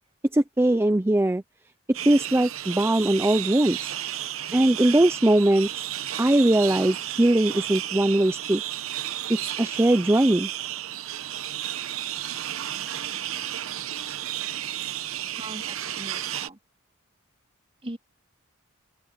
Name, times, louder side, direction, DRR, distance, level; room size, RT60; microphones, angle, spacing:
voice 1, 0.3-1.4 2.1-3.9 4.5-5.7 6.2-8.6 9.3-10.5, right 1 dB, 10° right, 0.5 m, -21 dB
sound 1, 1.9-16.5, right 12 dB, 75° right, 0.9 m, -33 dB
voice 2, 15.4-16.6 17.8-18.0, right 1 dB, 30° right, 3.4 m, -40 dB
open air
head